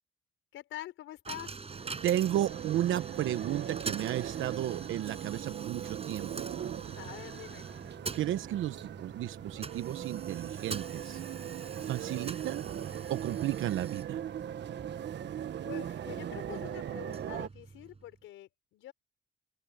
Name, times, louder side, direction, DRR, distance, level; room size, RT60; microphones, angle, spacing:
voice 1, 0.5-1.6 6.9-7.7 15.6-18.9, left 14 dB, 90° left, 5.6 m, -45 dB
Coin (dropping), 1.2-18.2, right 4 dB, 30° right, 6.8 m, -45 dB
sound 1, 1.7-17.5, right 10 dB, 65° right, 1.4 m, -39 dB
voice 2, 2.0-6.5 8.1-11.2 11.8-12.7 13.1-14.2, right 12 dB, 80° right, 1.0 m, -33 dB
open air
cardioid pair, 90°, 20 cm